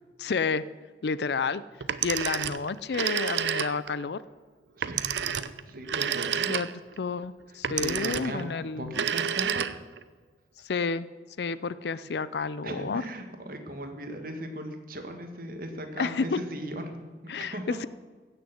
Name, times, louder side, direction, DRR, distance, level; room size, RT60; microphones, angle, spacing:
voice 1, 0.2-0.6 1.0-1.6 2.0-4.2 6.5-6.7 7.0-8.9 10.6-11.1 11.4-13.0 16.0-16.4 17.3-17.9, left 4 dB, 70° left, 16 dB, 0.5 m, -30 dB
Telephone, 1.8-4.0 4.8-7.0 7.6-8.4 8.9-10.0, right 8 dB, 90° right, 0.6 m, -30 dB
voice 2, 4.8-6.6 7.8-9.7 12.6-17.9, right 1 dB, 55° right, 5 dB, 1.7 m, -38 dB
16.0 x 6.7 x 8.0 m, 1.4 s
head